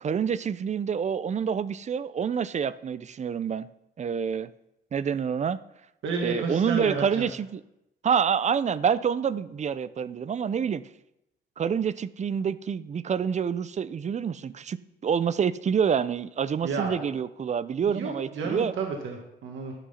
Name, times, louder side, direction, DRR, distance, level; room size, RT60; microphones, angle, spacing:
voice 1, 0.0-3.7 4.0-4.5 4.9-5.6 6.2-7.6 8.0-10.8 11.6-14.8 15.0-18.7, right 7 dB, 35° right, 16 dB, 0.5 m, -27 dB
voice 2, 6.0-7.3 16.6-17.1 17.8-19.7, right 4 dB, 75° right, 1 dB, 1.7 m, -31 dB
11.5 x 6.1 x 5.7 m, 0.86 s
cardioid pair, 90°, 20 cm